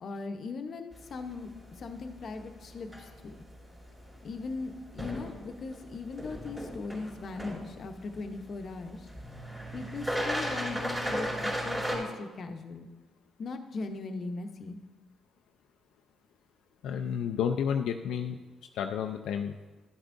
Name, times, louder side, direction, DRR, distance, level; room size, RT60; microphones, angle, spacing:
voice 1, 0.0-3.3 4.2-9.1 9.7-12.9 13.4-14.8, left 3 dB, 55° left, 6 dB, 0.8 m, -39 dB
sound 1, 0.9-12.0, equal, 15° right, 3.1 m, -38 dB
voice 2, 16.8-18.4 18.7-19.5, left 8 dB, 80° left, 5 dB, 0.4 m, -31 dB
12.5 x 8.0 x 2.6 m, 1.2 s
cardioid pair, 90°, 0 cm